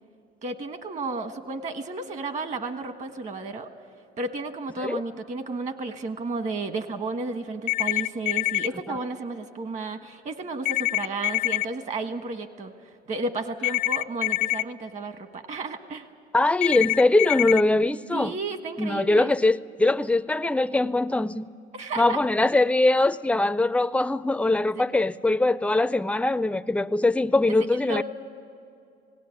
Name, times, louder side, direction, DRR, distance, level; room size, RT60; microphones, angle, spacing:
voice 1, 0.4-3.7 4.2-16.1 18.1-19.4 21.7-22.2 24.7-24.8 27.5-28.0, right 3 dB, 45° right, 8 dB, 1.4 m, -33 dB
sound 1, 7.7-8.7 10.7-11.7 13.6-14.6 16.6-17.6, left 19 dB, 65° left, 0.5 m, -25 dB
voice 2, 16.3-18.3 18.8-21.5 22.0-28.0, left 2 dB, 5° left, 14 dB, 0.4 m, -22 dB
18.5 x 18.0 x 9.6 m, 2.5 s
cardioid pair, 110°, 17 cm